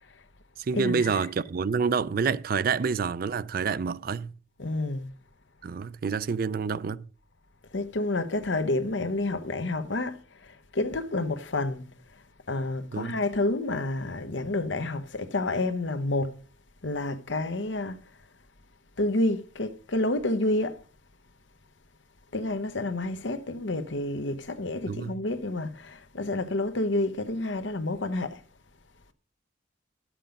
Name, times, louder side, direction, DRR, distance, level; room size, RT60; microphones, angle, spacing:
voice 1, 0.6-4.3 5.6-7.1 12.9-13.2 24.9-25.2, right 5 dB, 50° right, 0.4 m, -28 dB
voice 2, 4.6-5.1 7.7-10.2 10.7-11.8 12.5-16.3 16.8-18.0 19.0-20.7 22.3-28.3, left 2 dB, 80° left, 1.0 m, -29 dB
11.5 x 7.6 x 5.2 m
head